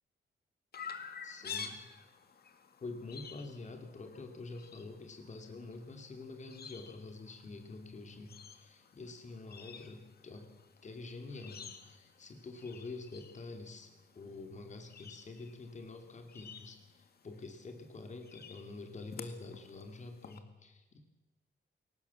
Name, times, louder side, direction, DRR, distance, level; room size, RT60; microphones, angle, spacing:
Chirp tweet, 0.7-20.4, left 6 dB, 55° left, 2.0 m, -51 dB
voice 1, 1.2-1.8 2.8-10.5 10.8-13.9 14.1-21.0, left 3 dB, 40° left, 5 dB, 2.9 m, -47 dB
22.0 x 19.0 x 7.2 m, 1.1 s
wide cardioid pair, 150°, 19 cm